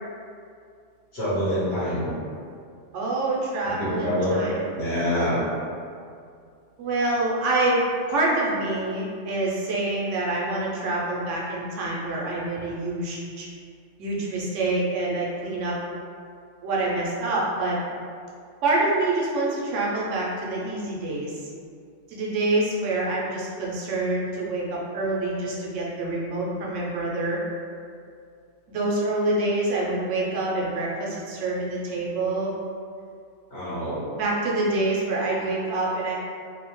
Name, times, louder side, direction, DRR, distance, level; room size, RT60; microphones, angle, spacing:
voice 1, 1.1-2.1 3.7-4.4 4.7-5.4 33.5-34.0, equal, 65° left, -10 dB, 1.2 m, -26 dB
voice 2, 2.9-4.5 6.8-13.5 14.0-15.8 16.6-17.8 18.6-21.3 22.1-27.4 28.7-32.5 34.1-36.1, right 2 dB, 80° right, -4 dB, 0.9 m, -26 dB
2.7 x 2.0 x 2.9 m, 2.3 s
omnidirectional pair, 1.2 m